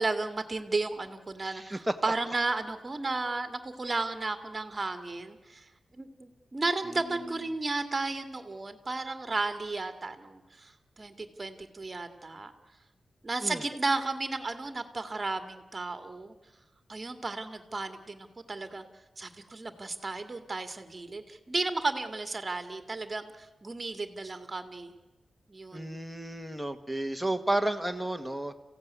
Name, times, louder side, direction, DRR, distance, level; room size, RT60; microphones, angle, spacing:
voice 1, 0.0-5.7 6.0-12.5 13.2-16.3 16.9-18.9 19.2-24.9 25.5-26.0, right 3 dB, 30° right, 8 dB, 2.1 m, -34 dB
voice 2, 1.4-2.0 13.4-13.6 25.7-28.5, right 1 dB, ahead, 4 dB, 1.6 m, -32 dB
29.5 x 16.0 x 9.5 m, 1.1 s
wide cardioid pair, 130°, 0 cm